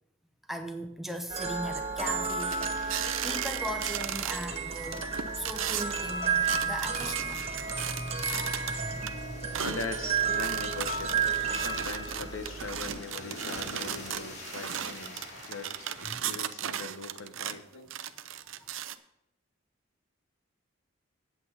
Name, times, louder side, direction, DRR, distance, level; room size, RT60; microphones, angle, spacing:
voice 1, 0.5-5.0 5.3-8.3 8.7-9.5 16.0-16.2 18.6-18.7, equal, ahead, 5 dB, 0.7 m, -39 dB
sound 1, 1.3-12.9, right 5 dB, 30° right, 1.0 m, -32 dB
sound 2, 2.3-4.5 4.8-9.1 9.5-17.6 17.9-18.9, right 10 dB, 65° right, 0.5 m, -36 dB
sound 3, 2.4-16.2, left 1 dB, 55° left, 2.5 m, -48 dB
voice 2, 9.6-17.9, left 3 dB, 75° left, 8 dB, 1.0 m, -41 dB
8.4 x 8.3 x 5.6 m, 0.81 s
head